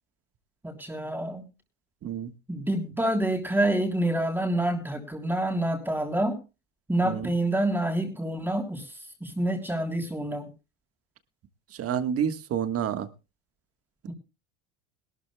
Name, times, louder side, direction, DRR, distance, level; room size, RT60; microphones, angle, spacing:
voice 1, 0.6-1.4 2.5-6.4 6.9-10.5 14.1-14.2, right 1 dB, 5° right, 2 dB, 3.3 m, -27 dB
voice 2, 11.8-13.1, right 8 dB, 40° right, 10 dB, 1.5 m, -28 dB
21.5 x 12.5 x 2.2 m, 0.29 s
supercardioid pair, 105°, 34 cm